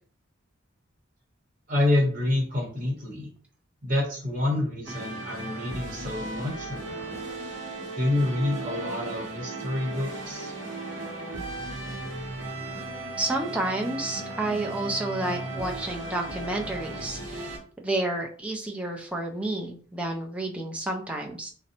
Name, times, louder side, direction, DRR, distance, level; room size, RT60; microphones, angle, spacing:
voice 1, 1.7-3.3 3.8-7.2 7.9-10.5, left 2 dB, 40° right, -3 dB, 0.8 m, -28 dB
sound 1, 4.9-17.6, right 2 dB, 75° right, 0.7 m, -36 dB
voice 2, 13.2-17.5 17.8-21.5, right 2 dB, 5° right, 0 dB, 0.4 m, -30 dB
2.6 x 2.0 x 2.7 m, 0.42 s
head